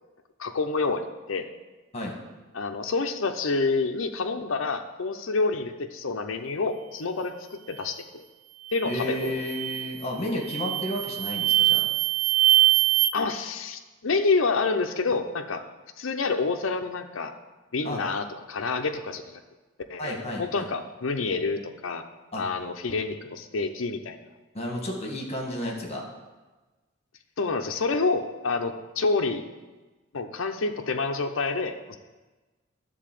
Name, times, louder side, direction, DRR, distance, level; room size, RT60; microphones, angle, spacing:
voice 1, 0.4-1.5 2.5-8.2 8.7-9.3 13.1-15.6 16.0-17.3 17.7-19.4 19.9-22.0 22.4-24.2 27.4-29.4 30.1-32.0, left 4 dB, 75° left, 5 dB, 0.7 m, -28 dB
sound 1, 8.7-9.0 9.4-9.9 10.4-13.1, right 15 dB, 60° right, 0.5 m, -23 dB
voice 2, 8.8-11.8 17.8-18.0 20.0-20.7 22.3-22.4 24.5-26.0, left 1 dB, 30° left, 0 dB, 1.7 m, -32 dB
11.0 x 4.1 x 7.5 m, 1.2 s
head